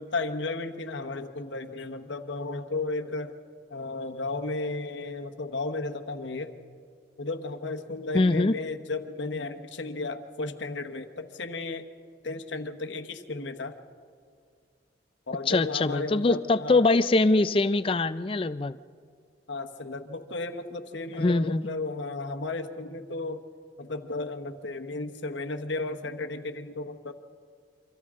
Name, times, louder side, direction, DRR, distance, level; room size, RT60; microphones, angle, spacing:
voice 1, 0.0-3.3 3.7-6.6 7.2-11.9 12.2-13.8 15.3-16.9 19.5-23.4 23.8-27.1, left 3 dB, 80° left, 5 dB, 1.1 m, -34 dB
voice 2, 8.1-8.5 15.5-18.8 21.2-21.6, left 2 dB, 30° left, 14 dB, 0.4 m, -23 dB
28.0 x 25.5 x 3.7 m, 2.2 s
head